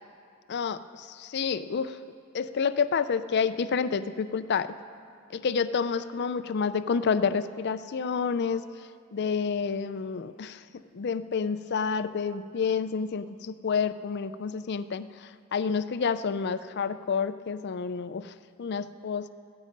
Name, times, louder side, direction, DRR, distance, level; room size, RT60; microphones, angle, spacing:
voice 1, 0.5-2.0 2.3-4.7 5.3-8.6 9.1-10.6 10.9-15.1 15.5-18.3 18.6-19.3, left 6 dB, 50° left, 12 dB, 0.4 m, -29 dB
15.5 x 13.5 x 5.2 m, 2.2 s
head